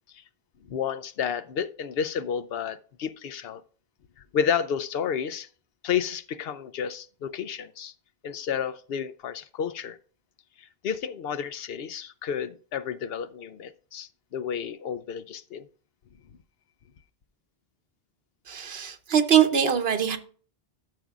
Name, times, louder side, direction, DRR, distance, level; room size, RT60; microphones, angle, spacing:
voice 1, 0.7-3.6 4.3-5.5 5.8-7.9 8.2-10.0 10.6-15.7, left 7 dB, 75° left, 0.8 m, -31 dB
voice 2, 18.5-20.2, right 9 dB, 75° right, 1.1 m, -22 dB
12.5 x 6.7 x 2.4 m
omnidirectional pair, 1.0 m